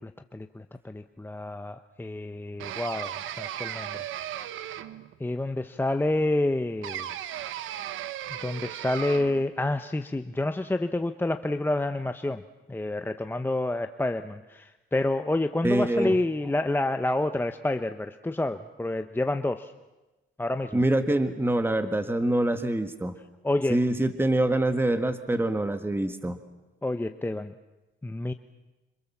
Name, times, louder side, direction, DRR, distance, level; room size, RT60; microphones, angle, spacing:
voice 1, 0.0-4.0 4.2-4.5 5.2-7.1 8.4-12.4 12.7-19.7 20.4-20.8 23.4-23.8 26.8-27.5 28.0-28.3, left 2 dB, 10° left, 8 dB, 1.0 m, -28 dB
sound 1, 2.6-5.1 6.8-9.5, right 11 dB, 85° right, 1.3 m, -36 dB
voice 2, 15.6-16.1 20.7-23.1 23.7-26.4, right 1 dB, 10° right, 9 dB, 1.6 m, -25 dB
27.5 x 26.5 x 7.3 m, 1.1 s
cardioid pair, 90°, 20 cm